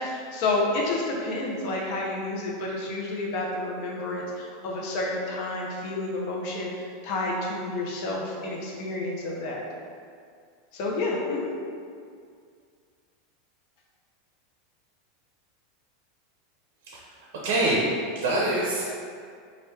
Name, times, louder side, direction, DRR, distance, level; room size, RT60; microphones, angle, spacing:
voice 1, 0.0-9.6 10.7-11.5, left 2 dB, 50° left, -2 dB, 0.7 m, -30 dB
voice 2, 17.4-18.8, right 1 dB, 70° right, -4 dB, 0.6 m, -25 dB
3.1 x 2.4 x 3.3 m, 2.2 s
supercardioid pair, 145°, 0 cm